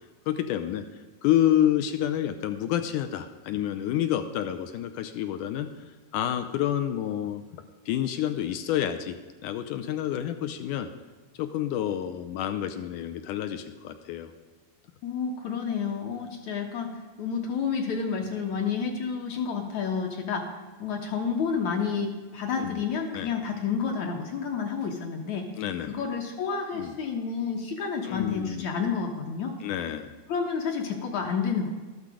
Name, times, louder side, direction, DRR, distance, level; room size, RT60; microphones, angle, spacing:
voice 1, 0.3-0.8 1.2-7.4 7.9-9.2 9.4-10.9 11.4-14.3 22.6-22.8 23.1-23.3 25.6-25.9 26.7-26.9 28.1-28.7 29.6-30.1, left 11 dB, 80° left, 9 dB, 1.9 m, -28 dB
voice 2, 15.0-20.5 20.8-25.5 25.8-29.5 30.3-31.7, left 6 dB, 65° left, 2 dB, 2.1 m, -30 dB
13.5 x 12.5 x 4.9 m, 1.4 s
omnidirectional pair, 4.3 m